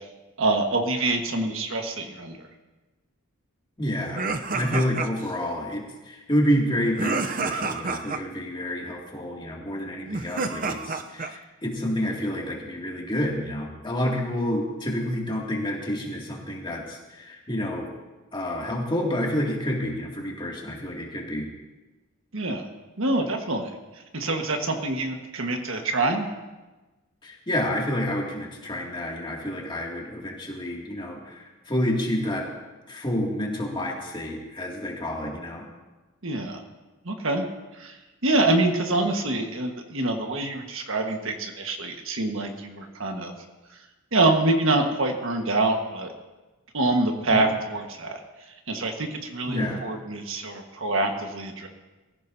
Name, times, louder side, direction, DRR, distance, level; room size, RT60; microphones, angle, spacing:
voice 1, 0.4-2.4 22.3-22.6 23.0-23.7 24.1-26.3 36.2-36.6 37.0-37.4 37.8-38.0 38.2-43.3 44.1-46.1 46.7-48.2 48.7-51.7, right 2 dB, 70° right, 3 dB, 1.5 m, -25 dB
voice 2, 3.8-17.9 18.3-21.5 27.2-32.5 32.9-35.6 47.3-47.5 49.5-49.8, equal, 20° left, -2 dB, 2.4 m, -29 dB
sound 1, 4.2-5.4 7.0-8.2 10.1-11.4, right 4 dB, 40° right, 0.6 m, -29 dB
23.0 x 14.5 x 2.8 m, 1.2 s
head